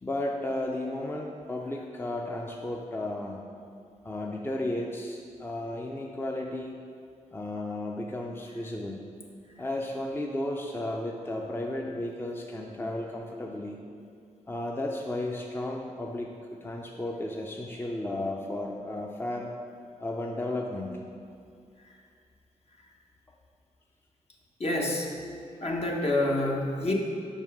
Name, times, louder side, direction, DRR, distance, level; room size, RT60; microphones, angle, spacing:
voice 1, 0.0-3.4 4.0-6.7 7.3-9.0 9.6-13.8 14.5-19.5 20.0-21.0 25.8-25.9, left 1 dB, 15° left, 0 dB, 0.6 m, -34 dB
voice 2, 24.6-25.1 25.6-26.9, left 2 dB, 50° left, -1 dB, 1.2 m, -27 dB
5.5 x 5.2 x 6.2 m, 2.4 s
cardioid pair, 65°, 13 cm